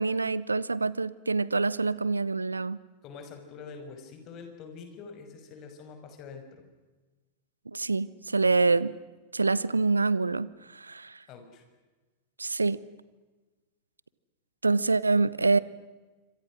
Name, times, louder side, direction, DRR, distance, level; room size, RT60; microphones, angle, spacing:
voice 1, 0.0-2.8 7.7-8.9 9.3-11.2 12.4-12.8 14.6-15.6, right 3 dB, 85° right, 20 dB, 0.7 m, -26 dB
voice 2, 3.0-6.6 8.4-8.7 11.3-11.6, left 5 dB, 40° left, 6 dB, 5.8 m, -45 dB
27.5 x 25.5 x 6.3 m, 1.2 s
figure-of-eight pair, 90°, 0 cm